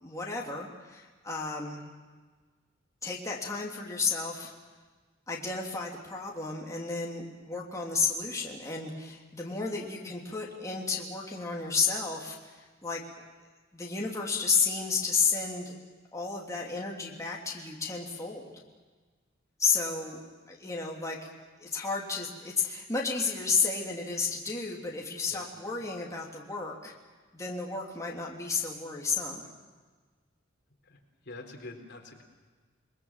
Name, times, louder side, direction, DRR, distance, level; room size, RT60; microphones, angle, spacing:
voice 1, 0.0-1.8 3.0-4.5 5.3-13.0 13.7-15.7 16.1-18.5 19.6-21.3 21.6-26.9 27.3-29.4, left 4 dB, 15° left, -2 dB, 3.2 m, -32 dB
voice 2, 31.2-32.2, left 2 dB, 60° left, 3 dB, 4.0 m, -45 dB
29.5 x 21.5 x 7.5 m, 1.4 s
head